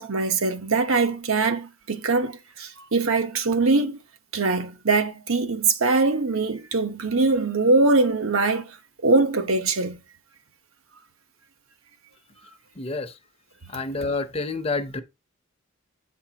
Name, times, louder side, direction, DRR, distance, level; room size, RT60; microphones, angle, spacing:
voice 1, 0.0-4.0 4.3-8.8 9.0-10.0, right 3 dB, 80° right, 1.0 m, -22 dB
voice 2, 12.8-13.1 13.7-15.0, left 3 dB, 25° left, 0.7 m, -28 dB
9.1 x 5.8 x 2.9 m
head